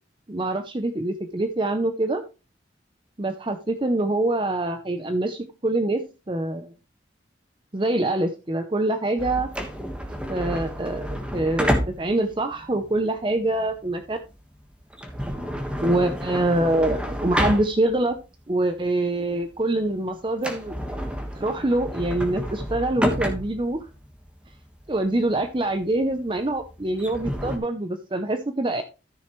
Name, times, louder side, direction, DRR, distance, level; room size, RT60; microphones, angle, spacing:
voice 1, 0.3-2.2 3.2-6.0 6.3-6.7 7.7-9.5 10.3-14.2 15.8-18.2 18.5-20.7 21.3-23.8 24.9-28.8, right 2 dB, 25° right, 7 dB, 0.7 m, -25 dB
sound 1, 9.2-18.2 18.6-18.7 19.3-19.6 19.9-20.0 20.3-27.6, equal, 5° right, 1.6 m, -30 dB
13.5 x 6.3 x 3.2 m, 0.30 s
head